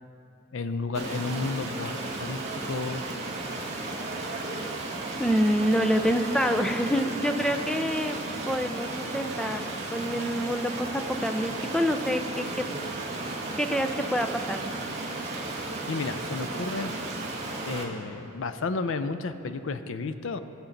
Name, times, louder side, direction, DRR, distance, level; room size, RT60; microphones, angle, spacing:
voice 1, 0.5-2.4 2.7-3.0 15.6-16.9 17.7-20.4, left 3 dB, 60° left, 11 dB, 0.5 m, -32 dB
Stream, 0.9-17.8, right 2 dB, 30° right, 1.6 m, -34 dB
voice 2, 5.2-8.2 8.4-9.6 9.9-12.7 13.6-14.6, equal, 5° left, 6 dB, 0.4 m, -26 dB
20.5 x 7.1 x 3.9 m, 2.9 s
head